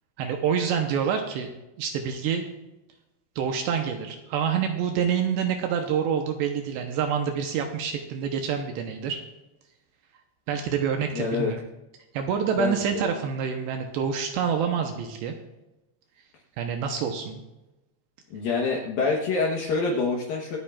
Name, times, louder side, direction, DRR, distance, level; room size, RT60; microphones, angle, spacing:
voice 1, 0.2-1.5 1.8-2.4 3.4-9.2 10.5-11.6 12.1-15.3 16.6-17.4, right 7 dB, 80° right, 4 dB, 2.7 m, -27 dB
voice 2, 11.1-11.5 12.6-13.1 18.3-20.6, left 4 dB, 70° left, -1 dB, 2.2 m, -26 dB
25.5 x 8.8 x 2.4 m, 0.97 s
omnidirectional pair, 5.6 m